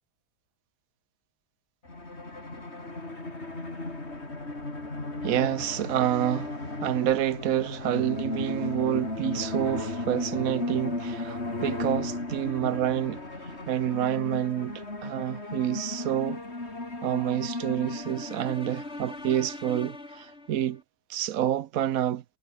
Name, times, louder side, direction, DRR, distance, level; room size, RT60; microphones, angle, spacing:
sound 1, 1.8-20.6, left 2 dB, 30° left, 4.5 m, -35 dB
voice 1, 5.2-6.5 6.8-16.4 17.0-20.8 21.1-22.2, right 11 dB, 65° right, 0.9 m, -28 dB
omnidirectional pair, 2.2 m